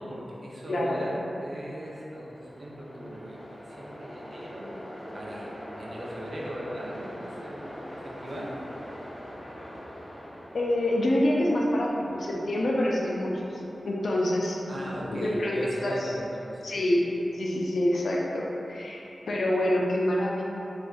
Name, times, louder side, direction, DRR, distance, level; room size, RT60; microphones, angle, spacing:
voice 1, 0.0-4.7 5.1-8.6 14.7-16.7, equal, 65° right, -5 dB, 0.6 m, -39 dB
Train, 1.5-18.7, equal, 40° left, 0.6 m, -45 dB
voice 2, 10.5-16.1 16.6-20.4, left 1 dB, 80° left, -3 dB, 0.4 m, -27 dB
4.2 x 2.4 x 2.3 m, 3.0 s
cardioid pair, 45°, 0 cm